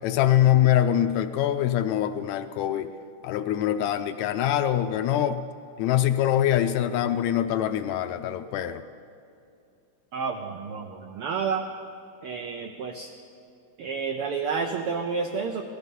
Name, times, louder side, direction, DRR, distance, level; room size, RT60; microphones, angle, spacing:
voice 1, 0.0-2.9 3.2-5.4 5.8-8.8, left 11 dB, 80° left, 9 dB, 1.7 m, -24 dB
voice 2, 10.1-11.6 12.2-13.1 13.8-15.6, right 5 dB, 90° right, 4 dB, 1.2 m, -30 dB
18.5 x 14.0 x 5.4 m, 2.5 s
omnidirectional pair, 3.5 m